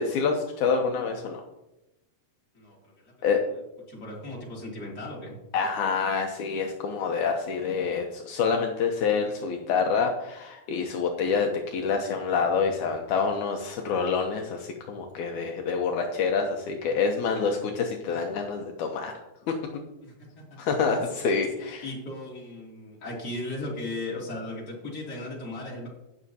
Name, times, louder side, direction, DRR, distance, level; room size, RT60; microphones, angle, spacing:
voice 1, 0.0-1.4 3.2-3.4 5.5-19.1 19.5-19.6 20.6-21.8, left 5 dB, 80° left, 2 dB, 1.7 m, -27 dB
voice 2, 2.5-3.3 3.9-5.4 20.0-21.0 21.6-25.9, left 1 dB, 30° left, -4 dB, 2.9 m, -37 dB
18.5 x 6.2 x 2.8 m, 0.94 s
omnidirectional pair, 4.4 m